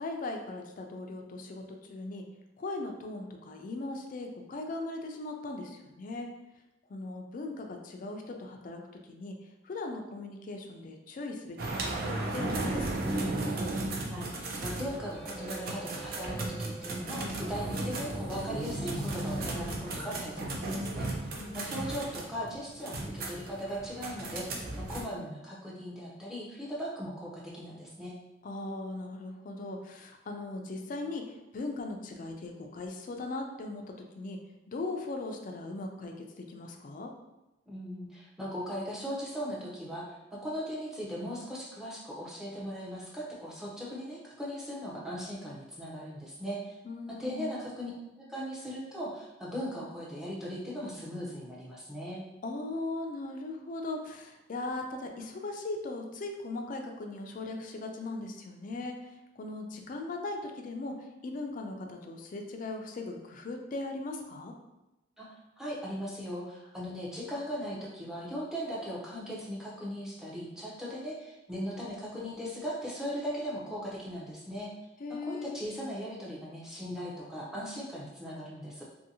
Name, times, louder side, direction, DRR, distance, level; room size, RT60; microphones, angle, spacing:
voice 1, 0.0-1.6 1.9-2.2 2.6-6.3 6.9-8.8 9.1-9.4 9.6-11.6 11.8-13.3 21.4-21.9 28.4-31.2 31.5-33.8 34.1-34.4 34.7-37.1 46.8-47.5 52.4-59.0 59.4-60.9 61.2-64.5 75.0-75.6, left 2 dB, 45° left, 3 dB, 0.3 m, -38 dB
sound 1, 11.6-25.0, right 2 dB, 55° right, 0.5 m, -35 dB
voice 2, 14.1-21.3 21.5-24.5 24.8-28.2 37.7-46.8 47.2-47.9 48.2-52.2 65.2-74.7 75.1-78.8, equal, 5° right, -5 dB, 0.6 m, -38 dB
2.6 x 2.6 x 2.7 m, 0.98 s
head